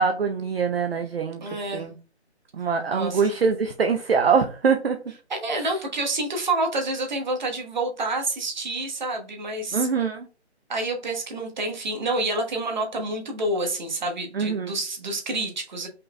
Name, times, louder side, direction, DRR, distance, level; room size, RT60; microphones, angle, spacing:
voice 1, 0.0-1.4 1.7-1.9 2.6-5.0 9.7-10.3 14.3-14.7, right 5 dB, 60° right, 0.7 m, -23 dB
voice 2, 1.4-1.8 2.9-3.3 5.3-9.9 10.7-15.9, right 2 dB, 40° right, 1.2 m, -28 dB
5.3 x 3.9 x 2.2 m
figure-of-eight pair, 165°, 34 cm